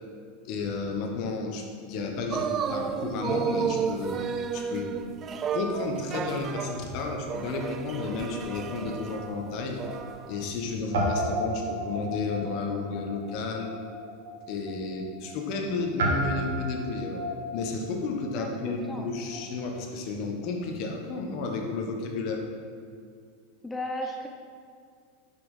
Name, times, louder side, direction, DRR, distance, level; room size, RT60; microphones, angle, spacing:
voice 1, 0.4-4.2 4.5-5.2 5.5-9.8 10.3-13.7 14.5-22.4, left 3 dB, 55° left, 2 dB, 1.3 m, -32 dB
sound 1, 2.3-10.4 10.8-10.9, right 6 dB, 30° right, 0.4 m, -32 dB
Guitar, 9.4-10.6 10.9-19.6, right 1 dB, 80° right, 1.5 m, -34 dB
voice 2, 18.4-19.1 23.6-24.3, left 1 dB, 10° left, 1 dB, 0.6 m, -35 dB
5.9 x 5.7 x 5.6 m, 2.3 s
hypercardioid pair, 110°, 0 cm